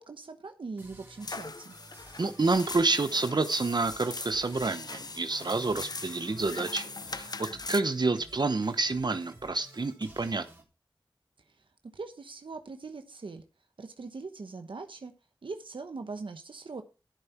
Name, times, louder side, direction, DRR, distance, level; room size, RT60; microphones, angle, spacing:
voice 1, 0.0-1.8 11.5-11.6 11.9-13.4 13.8-15.1 15.4-16.8, right 4 dB, 85° right, 6 dB, 1.1 m, -41 dB
sound 1, 0.8-10.6, right 1 dB, 25° right, 3.6 m, -54 dB
sound 2, 1.2-7.8, left 3 dB, 50° left, 0.6 m, -41 dB
voice 2, 2.2-10.4, right 3 dB, 60° right, 10 dB, 0.9 m, -28 dB
13.0 x 7.3 x 4.4 m, 0.30 s
wide cardioid pair, 60°, 8 cm